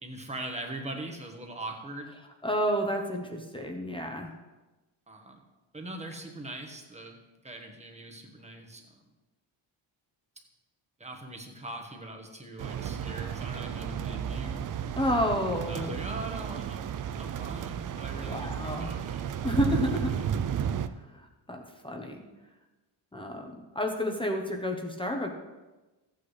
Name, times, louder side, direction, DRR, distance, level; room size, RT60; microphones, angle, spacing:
voice 1, 0.0-2.2 5.1-5.4 5.7-8.8 11.0-14.6 15.7-16.9 17.1-19.6, right 2 dB, 15° right, 2 dB, 1.2 m, -41 dB
voice 2, 2.4-4.3 15.0-16.0 18.3-18.9 19.4-20.1 21.1-22.2 23.1-25.3, equal, 10° left, 2 dB, 0.9 m, -30 dB
sound 1, 12.6-20.9, right 8 dB, 45° right, 0.4 m, -33 dB
14.5 x 8.8 x 3.2 m, 1.1 s
wide cardioid pair, 160°, 47 cm